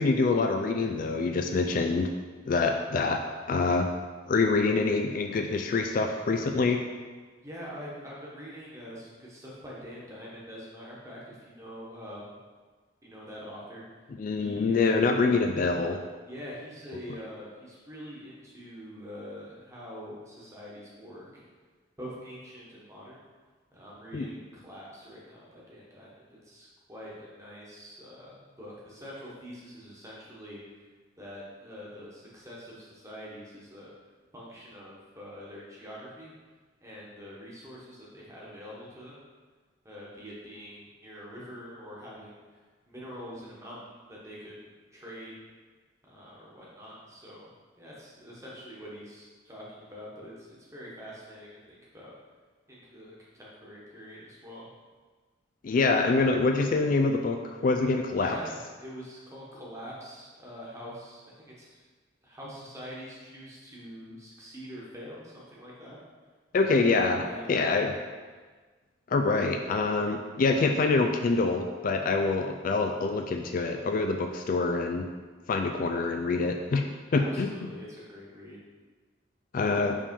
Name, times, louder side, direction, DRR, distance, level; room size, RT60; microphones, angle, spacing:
voice 1, 0.0-2.1 2.5-3.2 3.5-3.9 4.3-6.8 14.2-16.0 24.1-24.3 55.6-58.4 66.5-67.9 69.1-75.1 75.5-76.8 77.1-77.5 79.5-80.0, left 3 dB, 45° left, 5 dB, 0.3 m, -25 dB
voice 2, 7.4-12.3 13.0-13.8 14.4-15.1 16.2-21.4 22.0-23.2 23.7-30.6 31.2-33.9 34.3-36.3 36.8-39.2 39.8-42.6 42.9-44.6 44.9-45.3 46.0-47.5 47.8-52.1 52.7-54.7 58.1-61.8 62.2-66.0 66.5-67.9 77.2-78.6, equal, 15° right, -5 dB, 1.2 m, -45 dB
5.2 x 3.4 x 5.3 m, 1.4 s
head